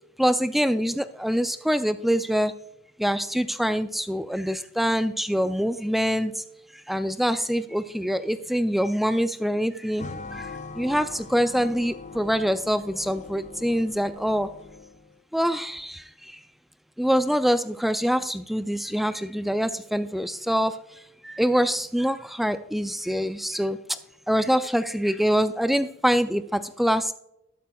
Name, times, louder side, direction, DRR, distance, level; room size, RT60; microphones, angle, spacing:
voice 1, 0.2-2.5 3.0-6.3 6.9-10.0 10.3-10.4 10.8-14.5 15.3-16.0 17.0-20.7 21.2-23.8 24.3-27.1, equal, ahead, 11 dB, 0.3 m, -24 dB
sound 1, 10.0-15.1, left 3 dB, 35° left, 0.7 m, -41 dB
12.5 x 12.0 x 2.3 m, 0.81 s
head